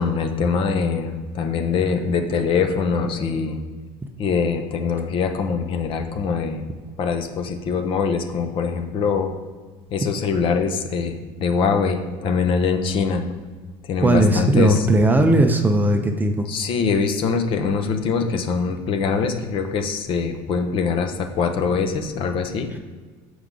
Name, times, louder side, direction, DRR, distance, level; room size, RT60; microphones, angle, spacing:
voice 1, 0.0-3.6 4.2-6.6 7.0-9.3 9.9-13.2 13.8-14.8 16.5-22.7, left 5 dB, 45° left, 6 dB, 0.8 m, -23 dB
voice 2, 14.0-16.5, right 1 dB, 15° right, 5 dB, 0.5 m, -17 dB
6.8 x 4.7 x 3.8 m, 1.4 s
cardioid pair, 135°, 12 cm